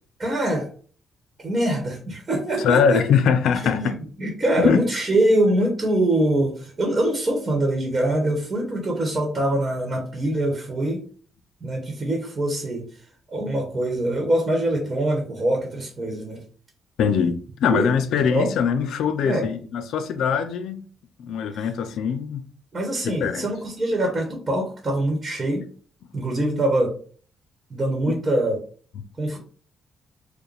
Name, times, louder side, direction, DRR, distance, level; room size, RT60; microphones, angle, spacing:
voice 1, 0.2-0.7 1.4-3.0 3.5-11.0 11.6-12.9 13.3-16.4 17.7-17.9 18.3-18.5 19.2-19.5 22.7-25.7 26.1-26.9 27.7-28.6 29.2-29.4, right 1 dB, 30° right, 1.2 m, -24 dB
voice 2, 2.6-4.0 4.6-4.8 17.0-20.8 21.2-22.4 23.0-23.5 28.1-28.2, left 7 dB, 75° left, 0.5 m, -22 dB
4.7 x 2.2 x 3.3 m
cardioid pair, 90°, 0 cm